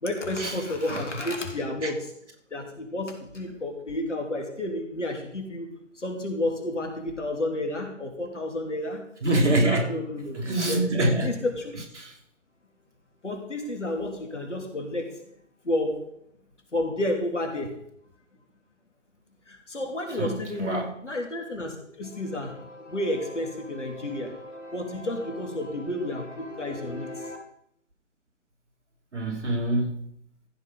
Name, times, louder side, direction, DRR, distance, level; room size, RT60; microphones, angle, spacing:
voice 1, 0.0-2.1 2.5-5.7 5.9-9.0 9.6-10.8 11.2-11.7 13.2-15.2 15.6-16.1 16.7-17.8 19.5-27.4, left 1 dB, 70° left, 3 dB, 3.2 m, -31 dB
voice 2, 9.2-9.9 10.4-11.3 12.0-12.1 20.2-20.9 29.1-30.0, right 1 dB, 65° right, 2 dB, 3.1 m, -25 dB
15.0 x 5.9 x 5.6 m, 0.72 s
figure-of-eight pair, 145°, 38 cm